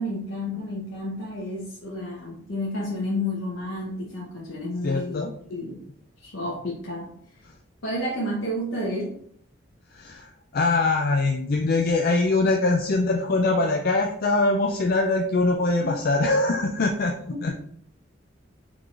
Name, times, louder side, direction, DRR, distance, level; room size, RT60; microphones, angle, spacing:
voice 1, 0.0-5.2 5.5-5.8 6.2-7.2 7.8-9.2 15.8-15.9 17.3-17.4, left 1 dB, 70° left, -5 dB, 0.9 m, -31 dB
voice 2, 4.8-5.3 9.9-17.1 17.4-17.5, left 2 dB, 45° left, 2 dB, 0.4 m, -23 dB
4.6 x 3.8 x 2.4 m, 0.63 s
head